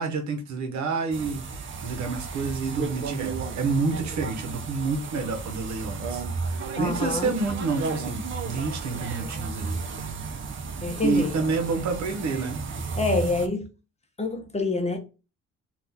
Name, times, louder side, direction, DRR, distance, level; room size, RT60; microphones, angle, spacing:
voice 1, 0.0-9.8 11.0-12.6, right 4 dB, 65° right, 0.9 m, -29 dB
sound 1, 1.1-13.5, right 4 dB, 40° right, 0.6 m, -33 dB
voice 2, 6.7-7.4 10.8-11.4 13.0-13.7 14.2-15.0, left 3 dB, 20° left, 0.7 m, -26 dB
3.5 x 2.4 x 2.8 m
cardioid pair, 90°, 30 cm